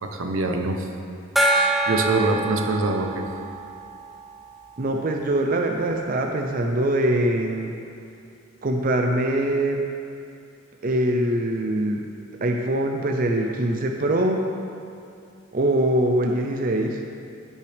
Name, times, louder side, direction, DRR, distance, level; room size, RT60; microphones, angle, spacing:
voice 1, 0.0-0.9 1.5-3.3, right 2 dB, 85° right, 4 dB, 0.9 m, -24 dB
Gong, 1.4-4.6, right 1 dB, ahead, 0.7 m, -25 dB
voice 2, 4.8-7.7 8.6-9.8 10.8-12.0 12.4-14.5 15.5-17.0, right 1 dB, 45° right, 2 dB, 0.5 m, -23 dB
16.0 x 5.7 x 3.4 m, 2.5 s
head